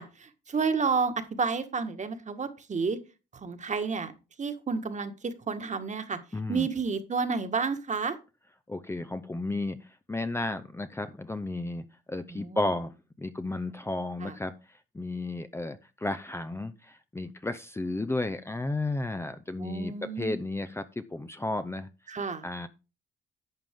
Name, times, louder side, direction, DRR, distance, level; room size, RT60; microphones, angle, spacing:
voice 1, 0.0-3.0 3.4-4.1 4.4-6.2 6.5-8.1 12.3-12.7 14.2-14.3 19.6-20.4 22.1-22.4, right 5 dB, 35° right, 8 dB, 1.6 m, -30 dB
voice 2, 6.3-6.7 8.7-21.9 22.4-22.7, left 2 dB, 15° left, 10 dB, 0.7 m, -33 dB
11.5 x 7.4 x 3.6 m, 0.30 s
cardioid pair, 90°, 20 cm